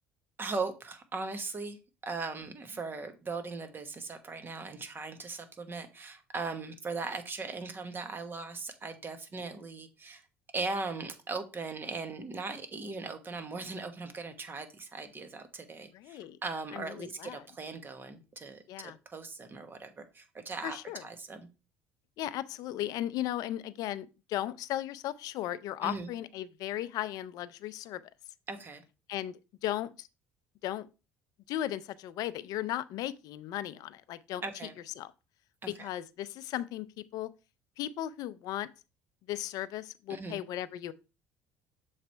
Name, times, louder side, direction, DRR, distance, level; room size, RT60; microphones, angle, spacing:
voice 1, 0.4-1.8 2.0-10.2 10.5-21.5 25.8-26.1 28.5-28.8 34.4-34.8 35.6-35.9 40.1-40.4, right 4 dB, 30° right, 1.3 m, -39 dB
voice 2, 15.9-16.4 16.7-17.4 18.7-19.0 20.6-21.0 22.2-28.0 29.1-30.1 30.6-30.9 31.5-34.4 35.0-35.1 35.8-37.3 37.8-38.7 39.3-40.9, left 13 dB, 65° left, 0.5 m, -36 dB
6.8 x 3.2 x 4.4 m
supercardioid pair, 80°, 7 cm